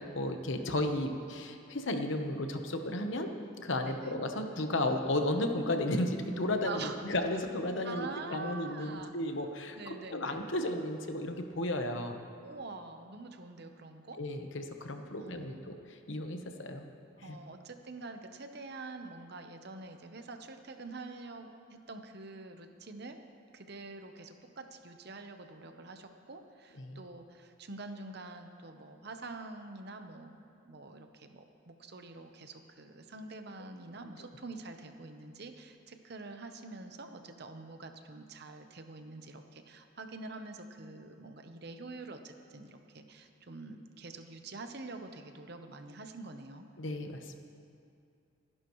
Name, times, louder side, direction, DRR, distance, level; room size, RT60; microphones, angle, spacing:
voice 1, 0.1-3.3 3.6-12.3 14.2-16.9 17.2-17.4 26.8-27.1 46.8-47.4, left 1 dB, 65° left, 5 dB, 1.0 m, -34 dB
voice 2, 3.8-4.1 6.6-7.0 7.8-9.1 9.7-10.4 12.4-14.2 15.1-15.7 17.2-23.2 23.5-30.3 30.6-46.6, right 3 dB, 50° right, 6 dB, 0.9 m, -46 dB
29.5 x 11.0 x 3.1 m, 2.5 s
head